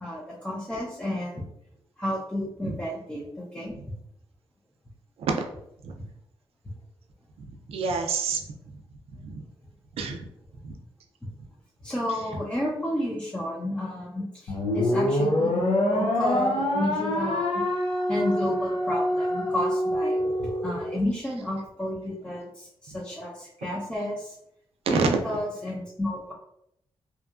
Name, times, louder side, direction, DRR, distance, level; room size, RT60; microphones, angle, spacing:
voice 1, 0.0-1.5 2.0-3.7 11.8-17.6 18.1-24.4 24.9-26.3, left 1 dB, 10° left, -6 dB, 0.6 m, -31 dB
voice 2, 7.7-8.4 9.1-9.4 10.0-10.3 10.6-10.7 24.9-25.1, right 5 dB, 85° right, 4 dB, 0.4 m, -27 dB
sound 1, 14.5-21.0, left 1 dB, 70° left, 0.5 m, -25 dB
2.8 x 2.3 x 2.3 m, 0.77 s
cardioid pair, 75°, 10 cm